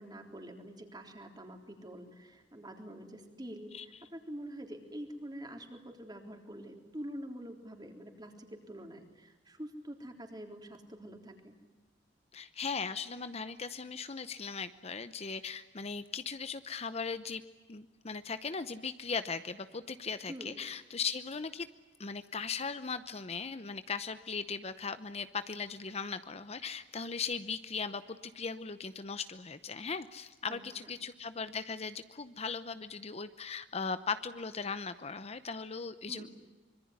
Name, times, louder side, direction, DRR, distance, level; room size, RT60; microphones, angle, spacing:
voice 1, 0.0-11.6 20.3-20.6 30.5-30.9 36.1-36.3, equal, 20° right, 4 dB, 3.7 m, -46 dB
voice 2, 12.3-17.4 17.7-21.7 22.0-36.3, left 5 dB, 35° left, 12 dB, 0.8 m, -38 dB
25.5 x 23.0 x 9.6 m, 1.2 s
head